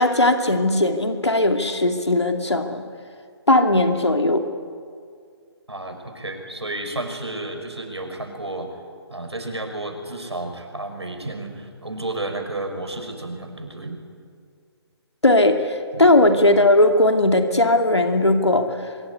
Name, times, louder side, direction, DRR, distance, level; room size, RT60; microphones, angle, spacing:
voice 1, 0.0-2.8 3.5-4.4 15.2-18.7, left 1 dB, 85° left, 5 dB, 2.4 m, -18 dB
voice 2, 5.7-8.7 9.1-14.0 15.9-16.1, right 2 dB, 80° right, 5 dB, 5.7 m, -32 dB
24.0 x 22.5 x 9.8 m, 2.2 s
figure-of-eight pair, 140°, 14 cm